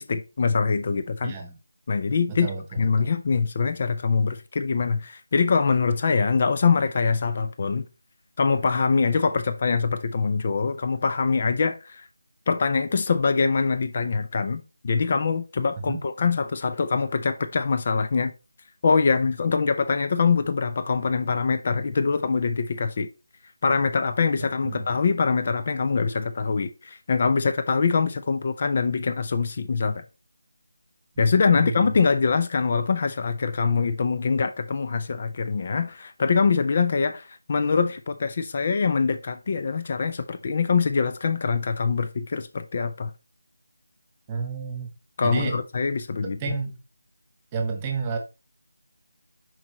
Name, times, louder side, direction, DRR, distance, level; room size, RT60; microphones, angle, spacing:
voice 1, 0.0-1.3 1.9-2.5 2.8-7.9 8.4-12.0 12.5-18.3 18.8-23.1 23.6-30.0 31.2-43.1 45.2-46.5, left 5 dB, 35° left, 0.5 m, -24 dB
voice 2, 1.2-1.6 2.3-3.1 15.8-16.0 24.6-24.9 31.5-32.0 44.3-44.9 45.2-45.6 46.2-46.8 47.5-48.2, right 5 dB, 15° right, 1.1 m, -31 dB
7.2 x 4.8 x 3.0 m
figure-of-eight pair, 160°, 0 cm